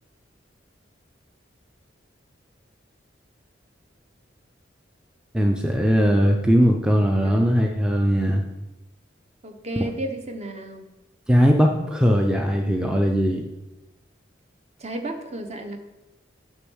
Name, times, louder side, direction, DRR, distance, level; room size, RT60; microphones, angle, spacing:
voice 1, 5.3-8.4 9.8-9.9 11.3-13.4, equal, 5° right, 1 dB, 0.5 m, -19 dB
voice 2, 9.4-10.9 14.8-15.8, right 1 dB, 35° right, 5 dB, 0.9 m, -33 dB
6.7 x 5.4 x 6.2 m, 1.0 s
head